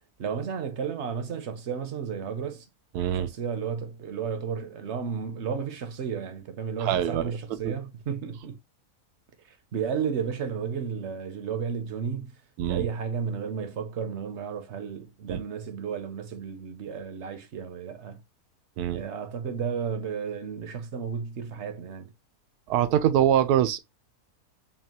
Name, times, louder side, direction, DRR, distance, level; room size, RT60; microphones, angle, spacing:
voice 1, 0.2-2.7 3.1-8.6 9.4-12.4 12.7-18.2 18.9-22.1, right 6 dB, 55° right, 0.9 m, -33 dB
voice 2, 2.9-3.3 6.8-7.3 7.6-7.7 12.6-12.9 15.3-15.4 18.8-19.0 22.7-23.8, right 10 dB, 85° right, 1.1 m, -24 dB
5.6 x 2.4 x 2.8 m
omnidirectional pair, 1.6 m